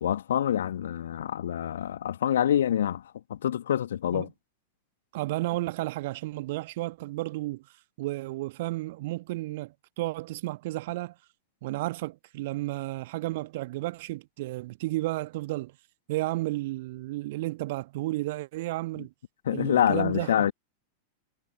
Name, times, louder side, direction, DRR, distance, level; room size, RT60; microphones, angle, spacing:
voice 1, 0.0-4.3 19.0-19.1 19.4-20.5, left 10 dB, 65° left, 2.4 m, -26 dB
voice 2, 5.1-7.6 8.0-11.1 11.6-15.7 16.1-19.1 19.5-20.5, right 19 dB, 50° right, 1.6 m, -32 dB
figure-of-eight pair, 90°, 0 cm